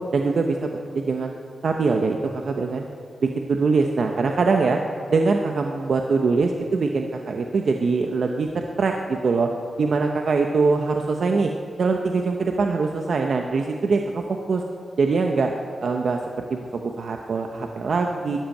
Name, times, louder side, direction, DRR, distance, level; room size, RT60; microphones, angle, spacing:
voice 1, 0.1-1.3 1.6-2.9 3.2-4.8 5.1-9.5 9.8-11.5 11.8-14.6 15.0-15.5 15.8-16.2 16.5-18.4, right 4 dB, 70° right, 3 dB, 1.0 m, -23 dB
13.5 x 10.0 x 9.1 m, 2.4 s
wide cardioid pair, 110°, 0 cm